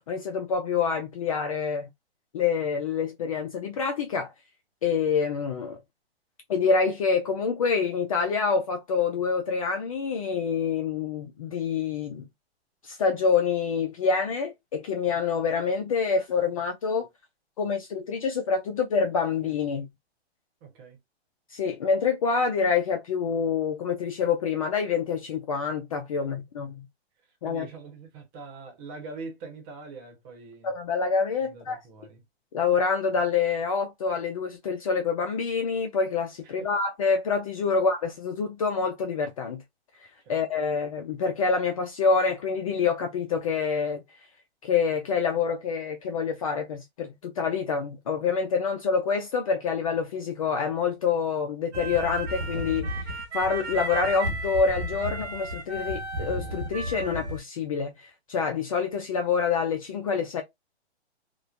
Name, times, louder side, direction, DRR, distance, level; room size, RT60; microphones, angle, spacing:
voice 1, 0.1-1.9 2.3-4.3 4.8-5.8 6.5-12.2 12.8-17.1 17.6-19.9 21.5-26.9 27.4-27.7 30.6-31.8 32.5-39.6 40.3-44.0 44.6-53.1 53.3-60.4, left 5 dB, 35° left, 0.4 m, -26 dB
voice 2, 20.6-21.0 26.2-26.3 27.4-30.7 31.4-32.2 36.4-36.7 40.2-40.4, right 3 dB, 25° right, 1.0 m, -43 dB
sound 1, 51.7-57.4, right 1 dB, 85° right, 1.3 m, -33 dB
3.0 x 2.1 x 2.5 m
hypercardioid pair, 135°, 33 cm